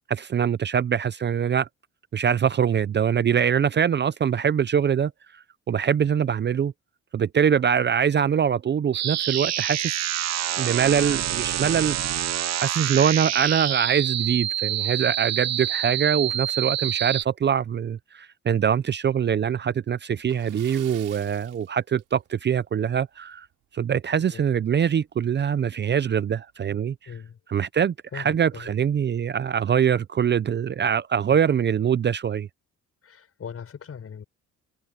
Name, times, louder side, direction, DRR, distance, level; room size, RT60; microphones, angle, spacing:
voice 1, 0.1-1.7 2.1-6.7 7.1-10.1 10.6-12.0 12.6-23.5 23.7-27.0 27.5-32.5, right 8 dB, 35° right, 0.5 m, -23 dB
sound 1, 8.9-17.2, right 11 dB, 60° right, 1.0 m, -27 dB
Splash splatter, 20.2-22.5 22.8-23.0 23.5-23.6 25.0-25.1 25.4-25.5 26.1-26.4, right 13 dB, 85° right, 3.5 m, -48 dB
voice 2, 27.1-27.4 28.1-28.7 31.3-31.4 33.0-34.2, left 7 dB, 50° left, 5.8 m, -40 dB
cardioid pair, 90°, 30 cm